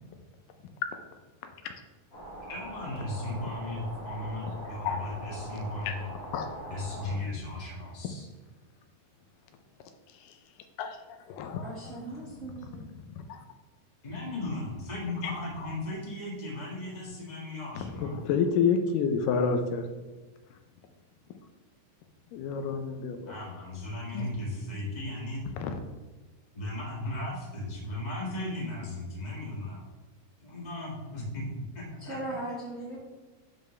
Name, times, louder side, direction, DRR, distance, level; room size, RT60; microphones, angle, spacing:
sound 1, 2.1-7.2, right 1 dB, 50° left, 2.5 m, -42 dB
voice 1, 2.5-6.1 6.7-8.3 14.0-18.2 23.2-25.5 26.5-29.9 30.4-32.4, left 1 dB, 20° left, -5 dB, 1.0 m, -36 dB
voice 2, 6.3-7.0 10.2-10.3 10.8-11.6 12.7-12.8 13.1-13.4 15.2-15.3 17.8-19.9 22.3-23.3 24.1-24.3 25.6-25.7, left 6 dB, 80° left, 7 dB, 2.2 m, -29 dB
voice 3, 11.6-12.8 32.0-33.0, right 1 dB, 35° right, -9 dB, 1.4 m, -38 dB
10.5 x 4.0 x 3.3 m, 1.2 s
omnidirectional pair, 3.9 m